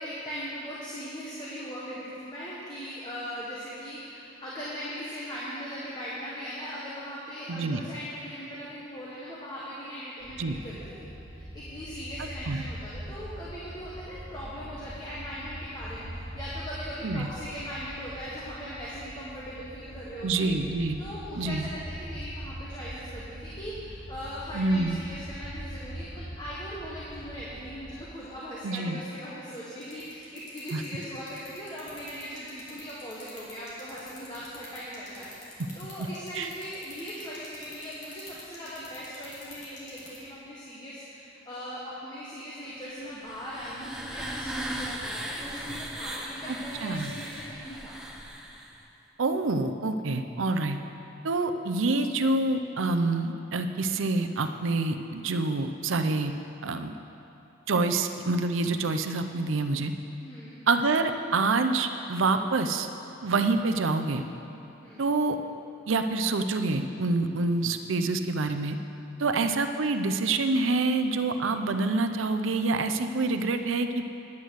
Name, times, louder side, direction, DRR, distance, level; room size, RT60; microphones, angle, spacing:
voice 1, 0.0-20.5 21.0-47.9 60.2-60.5 64.8-65.1 69.2-69.4, equal, 20° left, -8 dB, 1.4 m, -39 dB
voice 2, 7.5-7.8 10.4-10.6 12.5-12.6 17.0-17.3 20.2-21.0 21.3-21.7 24.5-25.0 28.6-29.0 30.7-30.8 36.4-36.5 46.5-46.6 46.8-47.1 49.2-50.8 51.2-56.3 56.6-56.9 57.7-59.9 60.7-62.9 63.2-64.2 65.0-65.4 65.9-68.8 69.2-74.0, right 3 dB, 85° right, 7 dB, 0.6 m, -27 dB
sound 1, 10.2-28.0, equal, 65° right, 1.6 m, -42 dB
sound 2, 29.5-40.2, left 2 dB, 35° left, 2.6 m, -47 dB
sound 3, 43.0-48.8, right 1 dB, 5° right, 0.7 m, -37 dB
9.6 x 9.3 x 6.4 m, 2.9 s
head